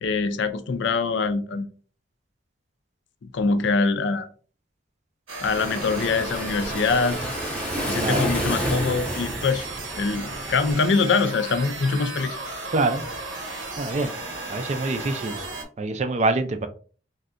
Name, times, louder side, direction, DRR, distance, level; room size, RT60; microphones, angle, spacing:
voice 1, 0.0-1.7 3.2-4.3 5.4-7.2 7.9-9.6 10.0-12.4, left 4 dB, 65° left, 10 dB, 0.4 m, -24 dB
sound 1, 5.3-15.6, right 2 dB, 75° right, 0.8 m, -35 dB
Waves surf, 5.5-10.7, equal, 5° left, 0.6 m, -30 dB
voice 2, 12.7-13.0 13.8-14.1 14.5-15.4 15.8-16.7, right 3 dB, 35° right, 8 dB, 0.3 m, -25 dB
3.2 x 2.7 x 2.5 m, 0.39 s
head